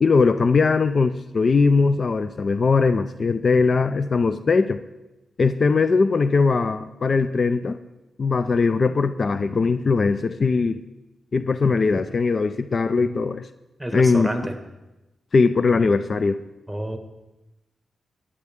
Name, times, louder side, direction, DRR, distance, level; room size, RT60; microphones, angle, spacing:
voice 1, 0.0-4.8 5.4-7.8 8.2-10.8 11.3-13.5 13.9-14.3 15.3-16.4, left 4 dB, 55° left, 12 dB, 0.4 m, -20 dB
voice 2, 13.8-14.6 16.7-17.0, right 1 dB, 5° right, 6 dB, 1.6 m, -28 dB
13.0 x 9.8 x 3.6 m, 1.0 s
cardioid pair, 55°, 0 cm